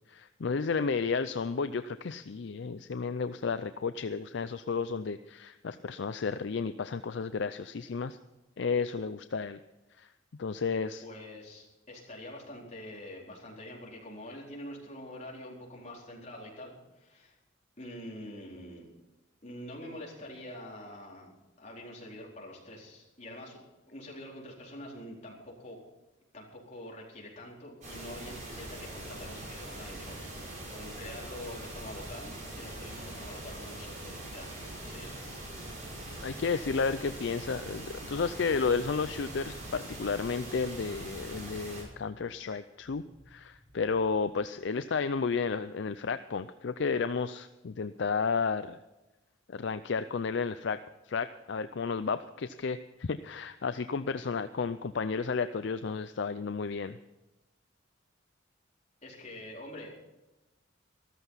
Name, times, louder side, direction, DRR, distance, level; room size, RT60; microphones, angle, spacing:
voice 1, 0.1-8.2 8.6-9.6 10.0-10.1 10.4-11.0 36.2-48.8 49.5-50.8 51.1-57.0, left 5 dB, 60° left, 12 dB, 0.5 m, -32 dB
voice 2, 11.0-17.4 17.8-18.9 19.4-21.3 21.6-23.6 23.9-25.8 26.3-35.4 59.0-59.9, left 1 dB, 35° left, -3 dB, 4.2 m, -45 dB
sound 1, 27.8-41.8, right 1 dB, 40° right, 5.7 m, -42 dB
sound 2, 41.2-45.2, equal, 55° right, 3.2 m, -60 dB
14.0 x 13.5 x 5.7 m, 1.0 s
head